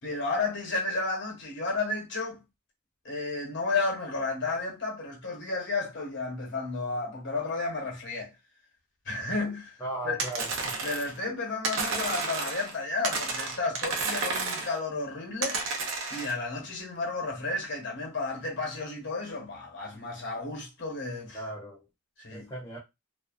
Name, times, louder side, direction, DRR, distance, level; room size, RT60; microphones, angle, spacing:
voice 1, 0.0-2.4 3.0-8.3 9.1-9.8 10.0-10.2 10.8-15.6 16.1-21.4 22.2-22.5, left 3 dB, 50° left, 0.9 m, -32 dB
voice 2, 9.8-10.7 21.3-21.8 22.3-22.8, right 1 dB, 15° left, 0.5 m, -37 dB
sound 1, 10.2-11.2 11.6-12.7 13.0-14.8 15.4-16.3, right 3 dB, 55° right, 0.5 m, -31 dB
2.4 x 2.2 x 2.3 m
head